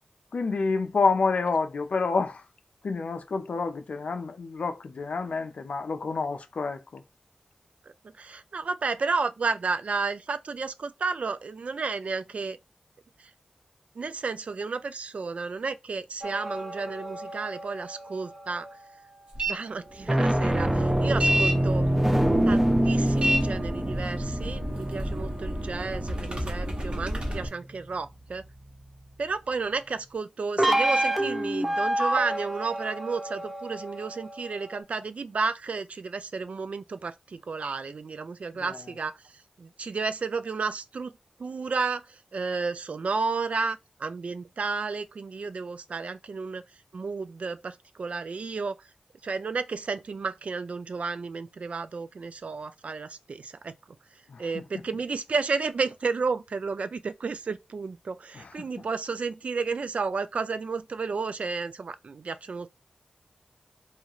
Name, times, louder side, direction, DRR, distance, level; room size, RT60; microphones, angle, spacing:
voice 1, 0.3-2.4 2.8-7.0 38.5-38.8 54.3-54.6 58.3-58.7, left 4 dB, 80° left, 0.4 m, -28 dB
voice 2, 8.2-12.6 13.2-13.3 14.0-18.7 19.5-21.9 22.4-28.4 29.2-39.1 39.6-41.1 41.4-46.6 46.9-48.8 49.2-53.8 54.4-62.7, right 4 dB, 70° right, 0.3 m, -32 dB
sound 1, 16.2-18.8 19.9-26.7 30.6-34.8, right 1 dB, 10° right, 0.6 m, -27 dB
sound 2, 19.3-19.5 19.9-27.5, equal, 50° right, 1.1 m, -31 dB
3.1 x 2.4 x 2.8 m
cardioid pair, 50°, 2 cm